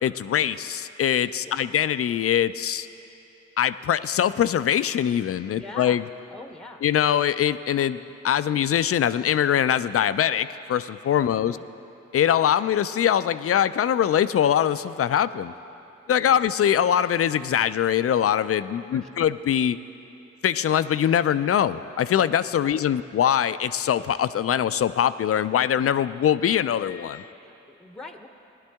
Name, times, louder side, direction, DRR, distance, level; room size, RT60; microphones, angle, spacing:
voice 1, 0.0-2.9 3.6-6.0 6.8-8.0 8.2-11.6 12.1-15.5 16.1-19.8 20.4-27.3, left 9 dB, 50° left, 14 dB, 0.4 m, -23 dB
voice 2, 5.5-6.0 6.3-6.8 11.2-11.7 16.2-16.4 18.9-19.3 22.6-22.8 27.4-28.3, left 2 dB, ahead, 6 dB, 0.8 m, -43 dB
16.5 x 11.0 x 3.5 m, 2.8 s
supercardioid pair, 40°, 30 cm